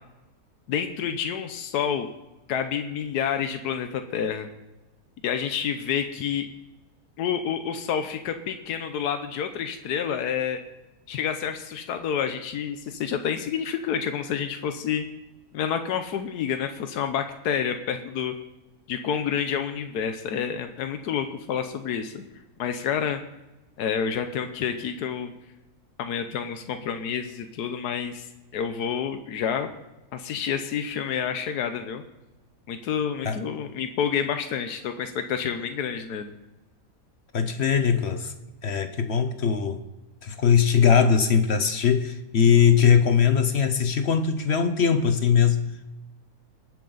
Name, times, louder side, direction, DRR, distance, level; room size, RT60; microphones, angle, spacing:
voice 1, 0.7-2.1 2.5-4.5 5.2-6.5 7.2-10.6 11.1-15.1 15.5-18.3 18.9-22.2 22.6-23.2 23.8-25.3 26.0-28.3 28.5-29.7 30.1-32.0 32.7-36.3, left 8 dB, 90° left, 7 dB, 1.3 m, -28 dB
voice 2, 37.3-38.3 38.6-39.8 40.2-45.9, left 7 dB, 55° left, 9 dB, 0.9 m, -21 dB
19.5 x 7.6 x 3.9 m, 1.0 s
omnidirectional pair, 1.6 m